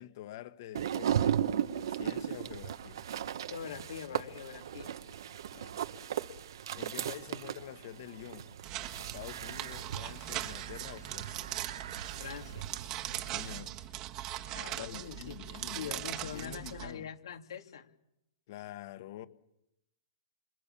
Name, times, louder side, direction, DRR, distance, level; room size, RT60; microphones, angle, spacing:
voice 1, 0.0-1.4 1.7-3.1 5.5-5.8 6.7-8.6 9.0-11.6 13.2-13.7 14.5-17.1 18.5-19.3, left 12 dB, 45° left, 1.6 m, -47 dB
sound 1, 0.7-13.6, right 9 dB, 65° right, 1.2 m, -37 dB
voice 2, 3.5-5.0 12.2-12.7 14.5-15.4 15.7-17.9, left 8 dB, 85° left, 3.1 m, -43 dB
sound 2, 8.6-16.9, right 13 dB, 25° right, 1.4 m, -40 dB
28.5 x 27.0 x 7.1 m
hypercardioid pair, 165°, 2 cm